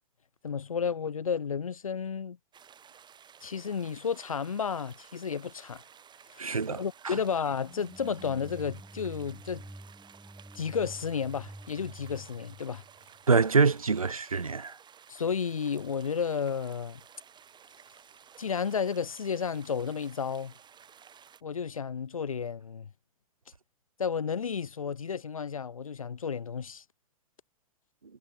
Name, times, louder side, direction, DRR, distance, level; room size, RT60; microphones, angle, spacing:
voice 1, 0.4-2.4 3.4-5.8 6.3-9.6 10.5-12.8 15.1-17.0 18.4-20.5 21.4-22.9 24.0-26.8, left 6 dB, 80° left, 2.7 m, -32 dB
sound 1, 2.5-21.4, right 8 dB, 25° right, 6.4 m, -55 dB
voice 2, 6.4-7.2 13.3-14.8, right 4 dB, 85° right, 1.8 m, -25 dB
sound 2, 7.6-13.5, right 1 dB, 5° right, 4.2 m, -48 dB
figure-of-eight pair, 90°, 17 cm